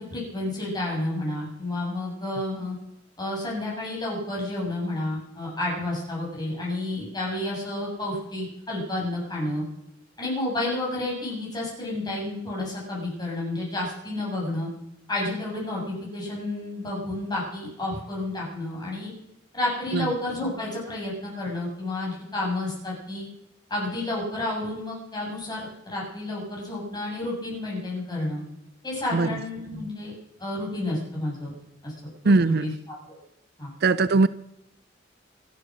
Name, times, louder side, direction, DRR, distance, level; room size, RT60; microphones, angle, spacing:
voice 1, 0.1-2.7 3.2-9.6 10.2-14.7 15.1-19.1 19.5-23.3 23.7-28.4 28.8-30.1 30.4-31.5 31.8-31.9 32.2-32.3 32.6-32.7 33.1-33.2 33.6-33.7, left 1 dB, 20° left, 7.3 m, -30 dB
voice 2, 32.2-32.7 33.8-34.3, right 3 dB, 55° right, 0.5 m, -20 dB
25.5 x 8.6 x 6.2 m
head